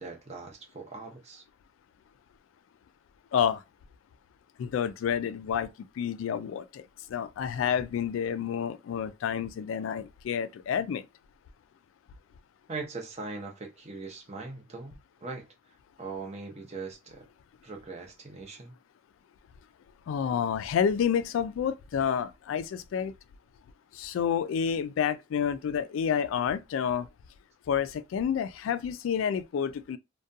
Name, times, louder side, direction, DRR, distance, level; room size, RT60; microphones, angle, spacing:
voice 1, 0.0-1.4 12.7-15.5 16.0-17.3 17.6-18.7, right 3 dB, 35° right, 0.7 m, -40 dB
voice 2, 4.6-5.7 6.0-11.0 20.1-23.1 23.9-27.1 27.7-30.0, left 8 dB, 90° left, 0.3 m, -29 dB
2.4 x 2.2 x 2.6 m
head